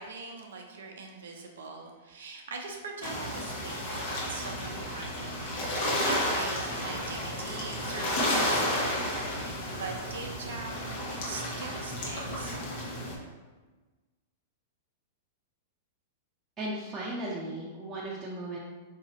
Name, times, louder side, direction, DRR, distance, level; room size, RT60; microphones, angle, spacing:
voice 1, 0.0-12.6, right 4 dB, 70° right, 2 dB, 0.5 m, -41 dB
sound 1, 3.0-13.1, left 1 dB, 50° left, 1.0 m, -32 dB
voice 2, 16.6-18.6, right 1 dB, 20° right, -6 dB, 0.7 m, -36 dB
4.7 x 2.7 x 2.9 m, 1.3 s
hypercardioid pair, 105°, 0 cm